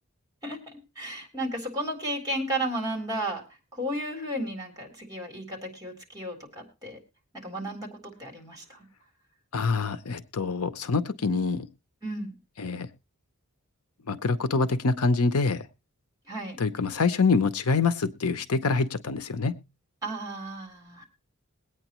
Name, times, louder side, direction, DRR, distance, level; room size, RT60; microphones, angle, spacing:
voice 1, 0.4-3.4 3.7-7.0 7.4-7.9 8.2-8.9 12.0-12.4 16.3-16.6 20.0-21.0, right 1 dB, 15° right, 1 dB, 3.7 m, -33 dB
voice 2, 9.5-11.7 12.6-12.9 14.1-15.6 16.6-19.5, left 4 dB, 70° left, 11 dB, 0.7 m, -25 dB
21.5 x 9.0 x 3.0 m, 0.28 s
head